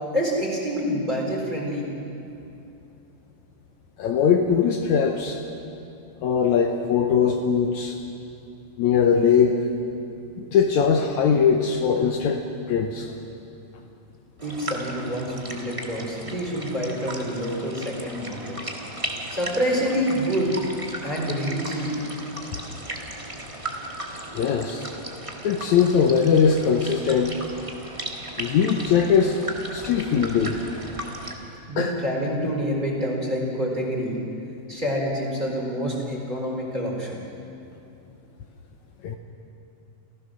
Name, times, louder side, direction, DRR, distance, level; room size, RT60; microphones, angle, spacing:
voice 1, 0.1-1.9 14.4-18.6 19.3-20.5 21.0-21.9 31.7-34.2 34.7-37.2, equal, 15° right, -3 dB, 3.8 m, -27 dB
voice 2, 4.0-5.4 6.2-8.0 8.8-9.6 10.4-12.4 12.7-13.1 24.3-24.9 25.4-27.3 28.4-29.4 29.7-30.6 31.8-31.9 39.0-39.2, left 6 dB, 70° left, 3 dB, 2.1 m, -21 dB
sound 1, 14.4-31.3, right 1 dB, 35° right, 0.5 m, -36 dB
28.0 x 15.5 x 6.3 m, 2.7 s
omnidirectional pair, 3.7 m